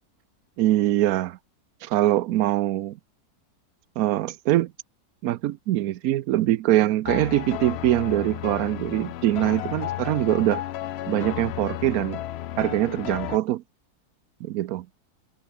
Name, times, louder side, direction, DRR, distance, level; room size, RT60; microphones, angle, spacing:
voice 1, 0.6-1.4 1.8-3.0 4.0-4.7 5.2-10.6 11.1-12.2 12.6-13.6 14.4-14.9, right 14 dB, 70° right, 1.1 m, -23 dB
sound 1, 7.0-13.4, left 13 dB, 75° left, 0.6 m, -33 dB
omnidirectional pair, 1.6 m